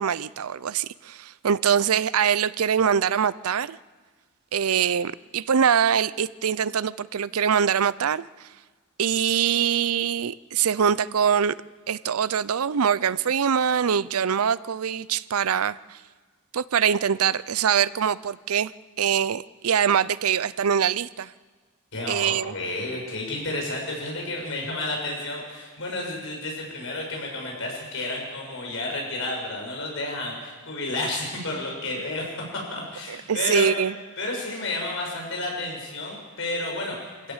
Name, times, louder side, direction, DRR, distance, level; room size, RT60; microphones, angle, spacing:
voice 1, 0.0-3.8 4.5-8.3 9.0-11.5 11.9-16.0 16.5-18.7 19.0-21.3 22.1-22.5 33.1-33.9, right 7 dB, 85° right, 18 dB, 0.5 m, -23 dB
voice 2, 21.9-33.7 34.2-37.3, left 2 dB, 60° left, 0 dB, 6.9 m, -31 dB
25.5 x 16.5 x 7.4 m, 1.4 s
head